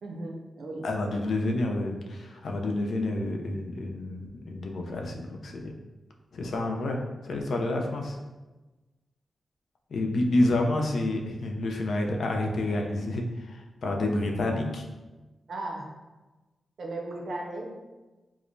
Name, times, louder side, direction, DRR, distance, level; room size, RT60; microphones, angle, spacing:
voice 1, 0.0-0.9 15.5-15.9 16.8-17.7, right 2 dB, 70° right, -1 dB, 0.6 m, -36 dB
voice 2, 0.8-5.7 6.3-8.2 9.9-14.9, left 2 dB, 70° left, 2 dB, 0.4 m, -29 dB
4.7 x 2.1 x 2.6 m, 1.2 s
wide cardioid pair, 115°, 0 cm